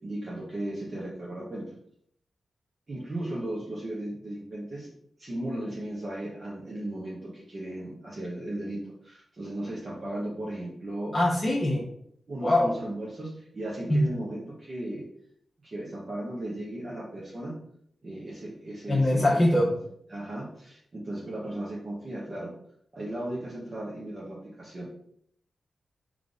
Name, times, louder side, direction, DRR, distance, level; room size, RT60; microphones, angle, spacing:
voice 1, 0.0-1.7 2.9-4.9 5.2-11.2 11.7-11.8 12.3-15.0 15.6-17.5 18.0-19.8 20.1-22.5 22.9-24.9, right 1 dB, 45° right, -5 dB, 1.2 m, -36 dB
voice 2, 11.1-11.8 12.4-12.7 13.9-14.0 18.9-19.7, left 1 dB, 30° left, -6 dB, 1.0 m, -22 dB
3.9 x 3.3 x 3.8 m, 0.68 s
cardioid pair, 85°, 0 cm